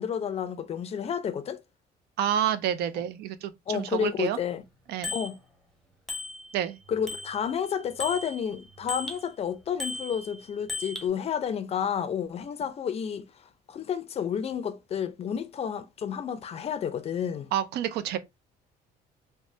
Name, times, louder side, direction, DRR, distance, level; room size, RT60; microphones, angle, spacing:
voice 1, 0.0-1.6 2.9-3.0 3.7-4.6 5.1-5.4 6.9-13.3 13.7-17.5, left 8 dB, 35° left, 0.4 m, -31 dB
voice 2, 2.2-4.4 4.9-5.1 6.5-6.8 17.5-18.2, right 10 dB, 70° right, 0.4 m, -29 dB
Bicycle bell, 5.0-5.3 6.1-6.7 7.1-9.2 9.8-11.1, left 3 dB, ahead, 0.7 m, -37 dB
3.1 x 2.1 x 2.7 m
cardioid pair, 110°, 17 cm